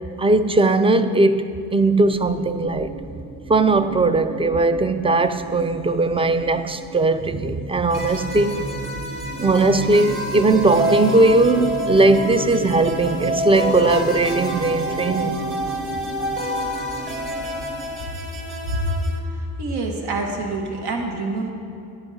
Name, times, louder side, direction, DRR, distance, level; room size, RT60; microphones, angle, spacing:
voice 1, 0.2-2.9 3.5-8.7 9.4-15.4, right 2 dB, 15° right, 0.4 m, -19 dB
sound 1, 2.1-18.0, right 3 dB, 55° right, 1.1 m, -35 dB
sound 2, 7.9-19.2, equal, 30° right, 1.3 m, -28 dB
voice 2, 19.2-21.5, right 2 dB, 80° right, 1.4 m, -26 dB
10.5 x 9.6 x 4.0 m
cardioid pair, 85°, 38 cm